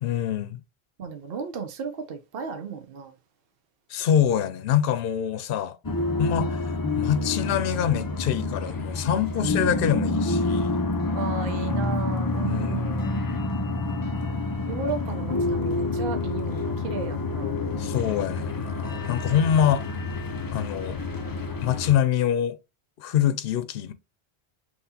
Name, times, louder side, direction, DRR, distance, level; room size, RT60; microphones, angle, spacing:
voice 1, 0.0-0.6 3.9-5.8 6.2-6.6 7.0-10.8 12.4-12.9 17.8-19.8 20.5-21.0 21.6-22.6 23.0-23.9, left 9 dB, 65° left, 0.7 m, -25 dB
voice 2, 1.0-3.1 6.4-6.5 9.3-9.5 11.1-13.1 14.7-17.5, right 5 dB, 65° right, 0.9 m, -34 dB
sound 1, 5.8-22.0, left 3 dB, 35° left, 0.3 m, -28 dB
5.7 x 3.0 x 2.8 m
omnidirectional pair, 1.1 m